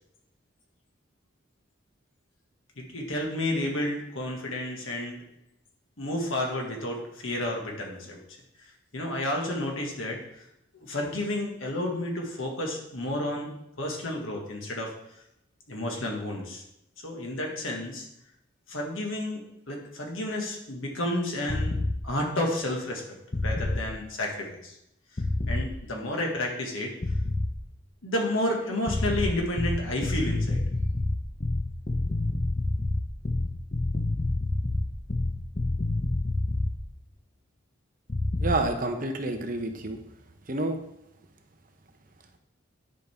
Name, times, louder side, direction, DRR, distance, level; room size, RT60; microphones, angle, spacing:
voice 1, 2.8-5.2 6.0-8.2 8.9-10.4 10.7-14.9 15.7-16.6 17.0-18.0 18.7-21.7 22.0-23.0 23.4-24.7 25.5-26.9 28.0-30.6, left 1 dB, 85° left, 0 dB, 1.8 m, -31 dB
sound 1, 21.5-22.0 23.3-23.8 25.2-25.7 27.0-27.5 28.9-36.8 38.1-38.6, left 2 dB, 35° left, 0.8 m, -27 dB
voice 2, 38.4-40.0 40.5-40.8, right 2 dB, 45° right, 5 dB, 0.8 m, -28 dB
10.5 x 5.2 x 3.5 m, 0.79 s
head